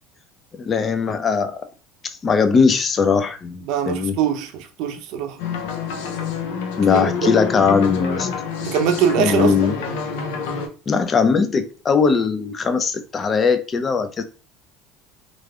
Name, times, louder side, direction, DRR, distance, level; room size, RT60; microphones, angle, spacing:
voice 1, 0.6-1.6 2.2-4.2 6.8-8.3 9.2-9.7 10.9-14.2, left 5 dB, 35° left, 0.5 m, -19 dB
voice 2, 3.7-5.4 6.8-7.3 8.6-9.7, right 8 dB, 70° right, 0.6 m, -22 dB
sound 1, 5.4-10.7, left 6 dB, 80° left, 0.5 m, -27 dB
3.1 x 2.4 x 2.3 m
supercardioid pair, 90°, 0 cm